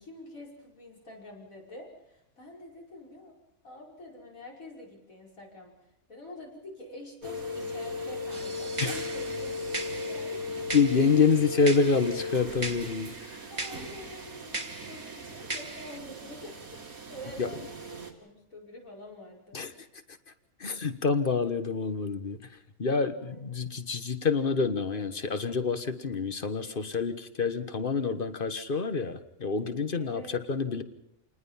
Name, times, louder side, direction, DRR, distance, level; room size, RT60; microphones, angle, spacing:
voice 1, 0.0-3.4 3.6-5.8 6.1-10.5 13.5-16.8 17.1-19.6 23.1-23.5 29.9-30.3, left 1 dB, 75° left, -2 dB, 5.8 m, -47 dB
sound 1, 7.2-18.1, left 2 dB, 90° right, 2.9 m, -37 dB
sound 2, 8.3-16.0, right 2 dB, 30° right, 1.9 m, -40 dB
voice 2, 10.7-13.5 17.4-17.5 19.5-19.7 20.1-20.2 20.6-30.8, left 5 dB, 40° left, 10 dB, 1.4 m, -27 dB
28.5 x 20.0 x 5.7 m, 0.85 s
omnidirectional pair, 1.4 m